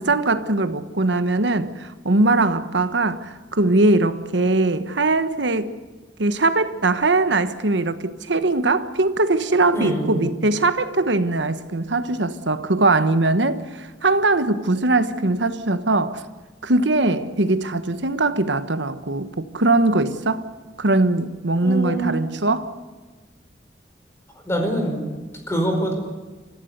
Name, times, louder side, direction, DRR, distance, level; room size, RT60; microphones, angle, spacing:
voice 1, 0.0-5.8 6.2-16.2 16.6-20.4 20.8-22.7, right 2 dB, 85° right, 1.3 m, -21 dB
voice 2, 9.7-10.3 21.6-22.2 24.4-25.0 25.5-25.9, right 1 dB, 15° left, 4.8 m, -24 dB
26.0 x 15.5 x 8.2 m
head